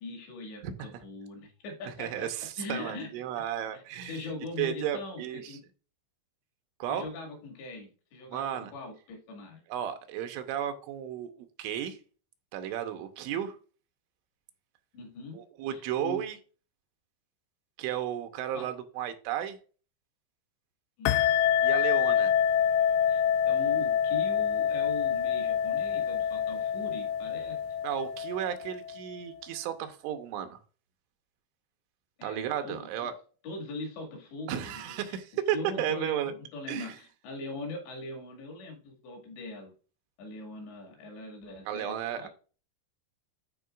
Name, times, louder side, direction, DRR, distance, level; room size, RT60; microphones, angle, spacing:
voice 1, 0.0-2.3 2.6-3.1 3.7-5.6 6.9-9.6 14.9-15.4 15.7-16.2 18.5-18.7 21.0-21.2 23.1-27.6 32.2-33.1 33.4-35.2 35.5-39.7 40.2-42.3, left 2 dB, 70° left, 4.2 m, -41 dB
voice 2, 1.9-4.3 4.6-5.6 6.8-7.0 8.3-8.7 9.7-12.0 12.5-13.6 15.3-16.4 17.8-19.6 21.6-22.3 27.8-30.6 32.2-33.1 34.5-36.3 36.7-37.0 41.7-42.3, right 10 dB, 85° right, 3.2 m, -34 dB
sound 1, 21.1-29.2, left 8 dB, 90° left, 3.0 m, -27 dB
12.5 x 4.5 x 2.4 m
omnidirectional pair, 5.4 m